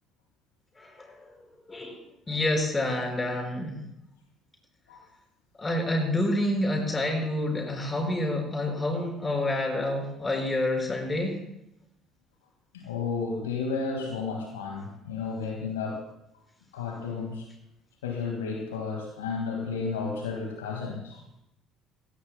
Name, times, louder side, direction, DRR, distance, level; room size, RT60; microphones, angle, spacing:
voice 1, 2.3-3.8 5.6-11.4, left 1 dB, 20° left, 2 dB, 5.2 m, -28 dB
voice 2, 12.7-16.0 16.7-17.5 18.0-21.2, left 5 dB, 75° left, 1 dB, 1.8 m, -32 dB
22.0 x 16.5 x 2.2 m, 0.83 s
figure-of-eight pair, 55°, 0 cm